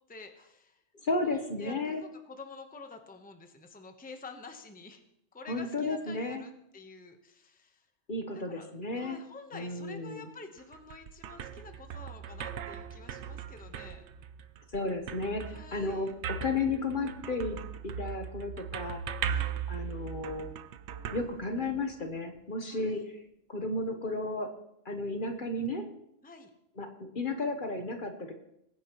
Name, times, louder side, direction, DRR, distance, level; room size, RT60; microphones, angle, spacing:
voice 1, 0.1-0.8 1.3-5.0 5.3-7.9 8.5-8.7 8.9-14.0 15.5-16.1 19.2-19.5 22.6-23.0 26.2-26.5, left 3 dB, 10° left, 5 dB, 0.9 m, -49 dB
voice 2, 1.0-2.0 5.5-6.4 8.1-9.2 9.5-10.3 14.7-19.0 19.7-20.5 21.1-23.2 23.5-24.5 24.8-25.9 26.8-28.3, left 2 dB, 45° left, 5 dB, 1.1 m, -33 dB
sound 1, 10.6-22.1, right 7 dB, 70° right, 0.9 m, -39 dB
20.5 x 9.5 x 3.0 m, 0.79 s
omnidirectional pair, 1.2 m